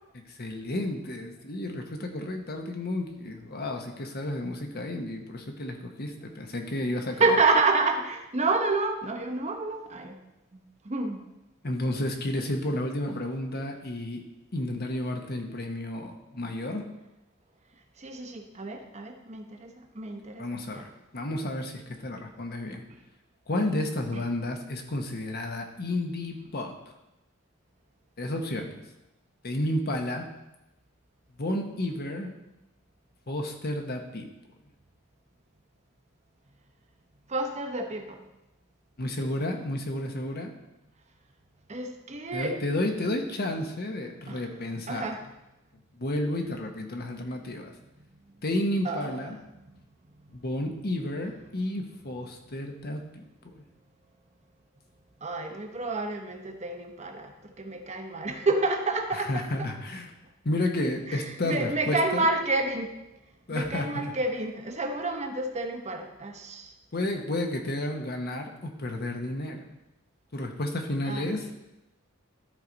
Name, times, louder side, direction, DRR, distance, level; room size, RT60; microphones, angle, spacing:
voice 1, 0.1-7.4 11.6-14.2 14.5-16.8 20.4-22.9 23.5-26.7 28.2-28.8 29.4-30.3 31.4-32.3 33.3-34.3 39.0-40.5 42.3-45.1 45.9-47.7 48.4-49.4 50.3-53.6 59.1-60.1 60.4-62.3 63.5-64.1 66.9-69.8 70.3-71.5, left 1 dB, 50° left, 3 dB, 1.1 m, -31 dB
voice 2, 7.2-10.2 10.5-11.2 18.0-20.9 24.1-24.2 37.3-38.2 41.7-42.6 44.3-44.5 44.9-45.2 48.8-49.2 55.2-59.5 61.1-62.9 63.5-66.7 71.0-71.3, right 3 dB, 35° right, 5 dB, 0.9 m, -29 dB
13.0 x 4.9 x 4.0 m, 0.93 s
head